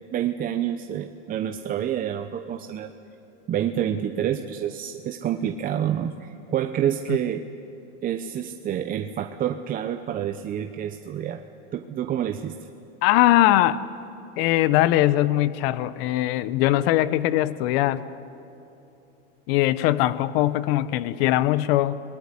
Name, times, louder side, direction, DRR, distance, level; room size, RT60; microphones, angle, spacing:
voice 1, 0.1-2.9 3.5-7.5 8.0-11.4 11.7-12.6, right 10 dB, 25° right, 7 dB, 0.8 m, -28 dB
voice 2, 13.0-13.8 14.4-18.0 19.5-22.0, left 14 dB, 55° left, 15 dB, 1.1 m, -21 dB
26.5 x 20.5 x 9.9 m, 2.9 s
supercardioid pair, 135°, 36 cm